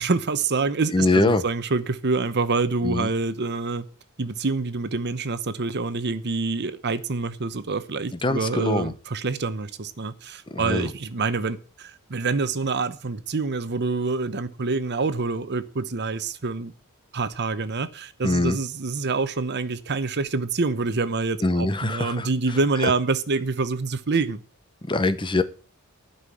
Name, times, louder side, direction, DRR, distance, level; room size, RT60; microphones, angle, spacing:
voice 1, 0.0-3.8 4.2-16.7 17.1-24.4, right 3 dB, 50° right, 0.8 m, -26 dB
voice 2, 0.9-1.4 2.8-3.1 8.1-8.9 10.5-10.9 18.2-18.6 21.4-22.9 24.9-25.4, left 2 dB, 20° left, 0.8 m, -23 dB
11.5 x 5.7 x 7.7 m
head